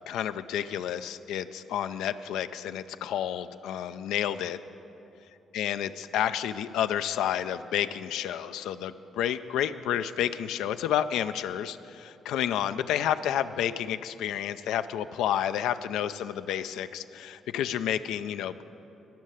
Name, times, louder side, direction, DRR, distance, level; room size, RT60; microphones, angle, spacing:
voice 1, 0.0-4.6 5.5-18.6, left 10 dB, 90° left, 12 dB, 0.3 m, -30 dB
13.0 x 5.6 x 9.1 m, 2.9 s
cardioid pair, 90°, 0 cm